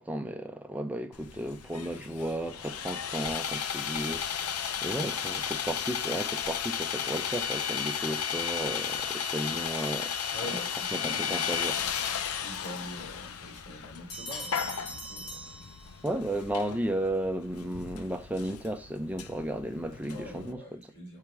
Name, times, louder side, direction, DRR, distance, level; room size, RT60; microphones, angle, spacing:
voice 1, 0.0-10.2 10.9-11.7 16.0-20.8, right 1 dB, 5° right, 0.6 m, -34 dB
Sawing, 1.1-20.5, left 7 dB, 85° left, 0.7 m, -34 dB
voice 2, 10.3-16.4 20.1-21.2, left 1 dB, 50° left, 3.2 m, -45 dB
sound 1, 14.1-16.3, equal, 65° left, 3.0 m, -42 dB
5.1 x 4.6 x 5.9 m
head